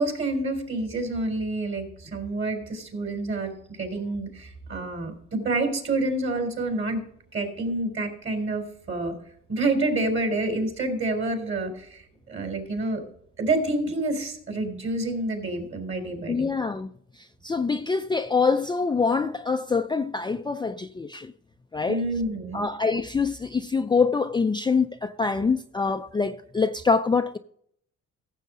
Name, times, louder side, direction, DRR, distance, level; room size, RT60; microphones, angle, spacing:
voice 1, 0.0-7.0 7.3-9.1 9.5-12.0 12.3-13.0 13.4-16.5 21.9-22.7, right 2 dB, 45° right, 3.8 m, -28 dB
voice 2, 16.3-16.9 17.2-21.3 21.7-22.1 22.5-27.4, left 4 dB, 15° left, 0.4 m, -25 dB
15.0 x 7.4 x 3.8 m
cardioid pair, 90°, 30 cm